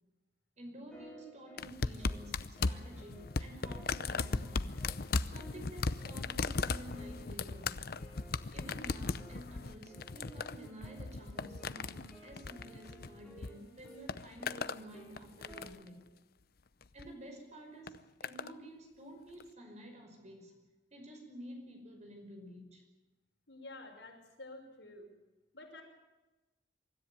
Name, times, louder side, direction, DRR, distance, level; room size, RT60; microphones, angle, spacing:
voice 1, 0.6-4.8 5.3-7.9 8.5-16.1 16.9-20.6 20.9-22.8, equal, 40° right, 4 dB, 5.2 m, -51 dB
sound 1, 0.9-15.7, right 1 dB, 5° left, 5.7 m, -58 dB
sound 2, 1.6-13.5 13.8-14.8 15.2-15.9 16.8-17.1 17.9-18.5 19.4-19.5, left 4 dB, 55° left, 0.7 m, -37 dB
voice 2, 23.5-25.1 25.5-25.8, left 2 dB, 85° left, 1 dB, 5.7 m, -50 dB
25.0 x 13.5 x 9.4 m, 1.1 s
head